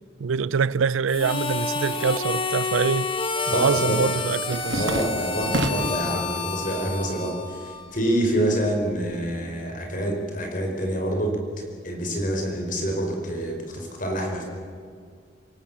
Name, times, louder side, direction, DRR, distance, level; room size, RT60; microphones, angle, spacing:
voice 1, 0.2-3.1 3.5-4.9, right 5 dB, 85° right, 0.5 m, -24 dB
Harmonica, 1.1-8.0, left 4 dB, 25° left, 1.5 m, -29 dB
sound 1, 2.7-3.0 3.3-6.1 6.5-7.2 7.5-9.2, right 1 dB, 65° right, 1.8 m, -31 dB
voice 2, 3.5-4.0 4.7-11.4 11.8-14.4, right 1 dB, 45° left, 4.7 m, -27 dB
27.5 x 17.0 x 7.2 m
head